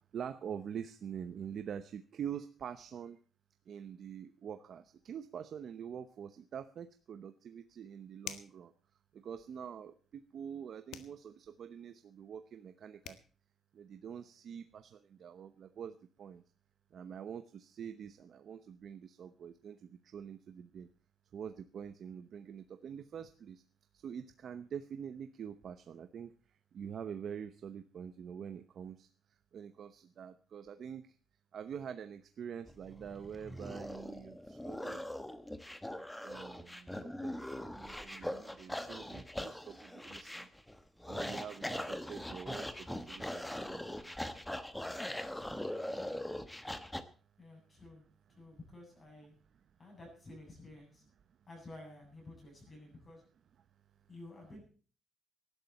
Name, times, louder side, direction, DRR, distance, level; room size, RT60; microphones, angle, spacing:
voice 1, 0.1-3.2 3.7-8.7 9.1-13.2 13.7-16.4 16.9-20.9 21.3-23.6 23.9-29.1 29.5-31.2 31.5-35.0 35.9-40.5 41.1-44.1, right 8 dB, 50° right, 9 dB, 0.9 m, -45 dB
sound 1, 8.2-8.6 10.9-11.2 12.7-12.8 13.0-13.3, left 9 dB, 75° left, 1.6 m, -45 dB
sound 2, 32.7-47.0, left 1 dB, 5° left, 1.1 m, -41 dB
voice 2, 47.4-49.3 49.8-51.0 51.5-53.2 54.1-54.6, left 2 dB, 25° left, 1 dB, 7.8 m, -52 dB
19.0 x 12.0 x 4.2 m, 0.40 s
cardioid pair, 170°, 0 cm